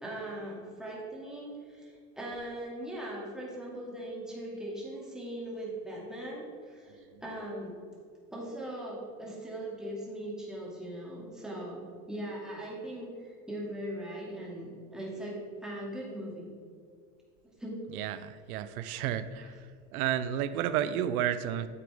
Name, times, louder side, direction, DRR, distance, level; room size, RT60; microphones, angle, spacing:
voice 1, 0.0-7.7 8.3-15.4 15.6-16.5 17.6-17.8 18.8-19.0 19.4-19.5, right 1 dB, ahead, -5 dB, 2.4 m, -40 dB
voice 2, 17.9-19.6 19.9-21.7, right 10 dB, 70° right, 13 dB, 0.7 m, -31 dB
9.8 x 7.6 x 3.5 m, 2.1 s
hypercardioid pair, 100°, 45 cm